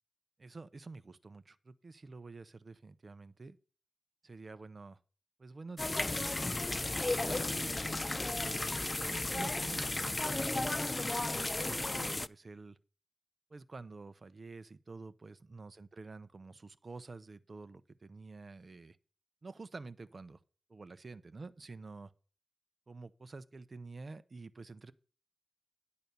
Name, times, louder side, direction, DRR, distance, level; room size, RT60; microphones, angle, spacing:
voice 1, 0.4-3.6 4.2-5.0 5.4-6.4 7.1-12.8 13.5-19.0 19.4-20.4 20.7-22.1 22.9-24.9, right 3 dB, 50° right, 0.7 m, -49 dB
sound 1, 5.8-12.3, left 2 dB, 30° left, 0.3 m, -34 dB
10.5 x 4.2 x 6.8 m
cardioid pair, 65°, 0 cm